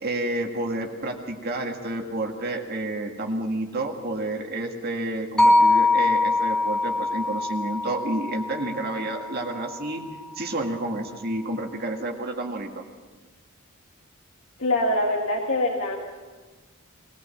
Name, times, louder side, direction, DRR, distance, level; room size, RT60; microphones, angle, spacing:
voice 1, 0.0-10.0 10.4-12.8, right 2 dB, 50° right, 2 dB, 1.9 m, -30 dB
sound 1, 5.4-9.6, left 2 dB, 5° left, 2.1 m, -23 dB
voice 2, 14.6-16.0, left 1 dB, 65° left, 0 dB, 2.0 m, -24 dB
21.0 x 18.0 x 7.1 m, 1.3 s
head